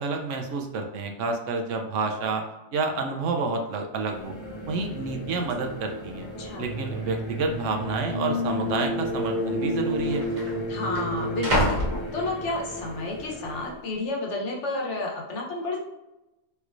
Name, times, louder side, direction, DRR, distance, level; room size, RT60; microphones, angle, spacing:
voice 1, 0.0-2.4 2.7-4.3 4.7-6.3 6.6-10.2, right 4 dB, 70° right, 3 dB, 0.9 m, -29 dB
sound 1, 4.0-4.1 4.4-4.8 5.5-5.6 6.3-6.9 7.1-7.3 8.1-8.3 9.3-9.4 9.6-12.8 13.3-13.7, equal, 40° right, 0.7 m, -30 dB
sound 2, 4.1-13.7, equal, 35° left, 0.5 m, -32 dB
voice 2, 10.7-11.7 12.1-15.8, left 2 dB, 65° left, -1 dB, 1.1 m, -31 dB
3.2 x 3.0 x 2.4 m, 0.97 s
omnidirectional pair, 1.4 m